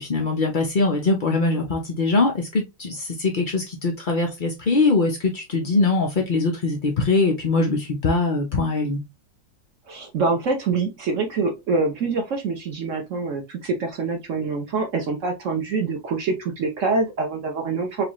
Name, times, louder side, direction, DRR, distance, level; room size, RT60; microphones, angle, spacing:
voice 1, 0.0-9.0, left 3 dB, 90° left, 0.4 m, -22 dB
voice 2, 9.9-18.0, right 4 dB, 55° right, 0.9 m, -25 dB
4.8 x 2.4 x 3.0 m
omnidirectional pair, 2.0 m